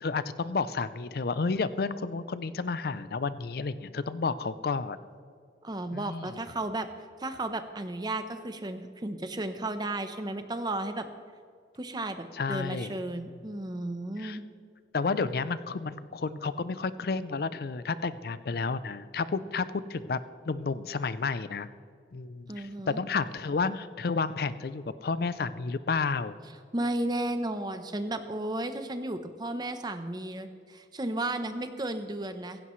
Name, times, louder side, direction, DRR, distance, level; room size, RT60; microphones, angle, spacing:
voice 1, 0.0-5.0 5.9-6.4 12.3-13.0 14.2-14.4 14.9-20.2 20.5-21.7 22.1-26.4, left 4 dB, 60° left, 14 dB, 0.5 m, -31 dB
voice 2, 5.6-6.9 7.2-11.1 11.8-14.4 22.5-23.0 26.7-32.6, right 1 dB, 25° right, 9 dB, 0.8 m, -34 dB
16.5 x 15.5 x 3.2 m, 2.3 s
head